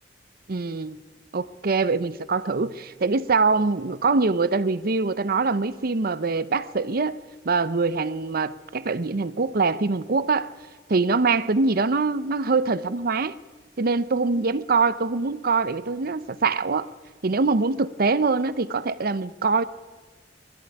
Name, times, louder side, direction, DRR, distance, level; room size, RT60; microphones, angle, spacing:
voice 1, 0.5-1.0 1.3-7.2 7.5-10.5 10.9-13.3 13.8-16.9 17.2-19.6, right 4 dB, 55° right, 0.7 m, -23 dB
20.5 x 13.5 x 9.9 m
head